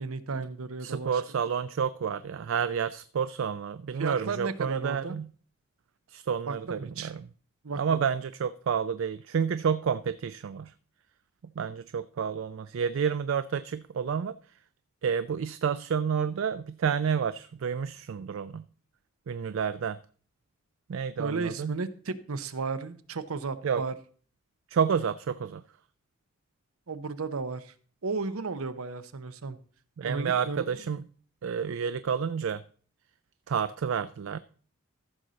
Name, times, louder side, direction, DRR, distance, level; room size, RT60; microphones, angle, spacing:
voice 1, 0.0-1.1 4.0-5.2 6.5-7.1 7.6-8.0 21.2-23.9 26.9-27.7 28.0-29.6 30.1-30.7, right 4 dB, 80° right, 14 dB, 0.7 m, -34 dB
voice 2, 0.8-5.3 6.1-7.3 7.7-10.7 11.4-14.6 15.0-18.7 19.3-20.0 20.9-21.8 23.6-23.8 24.7-25.6 30.0-31.1 31.4-32.6 33.5-34.4, right 7 dB, 65° right, 14 dB, 0.3 m, -30 dB
14.0 x 6.3 x 4.0 m, 0.44 s
head